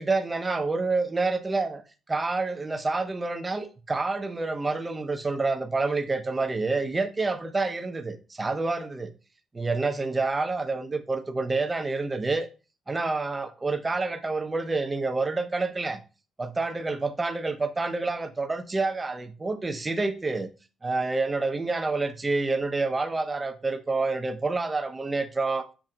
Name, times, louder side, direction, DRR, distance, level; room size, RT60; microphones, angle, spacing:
voice 1, 0.0-1.8 2.1-9.1 9.5-12.5 12.9-16.0 16.4-20.5 20.8-25.7, right 3 dB, 20° right, 0.6 m, -28 dB
5.8 x 2.2 x 3.7 m
cardioid pair, 90°, 0 cm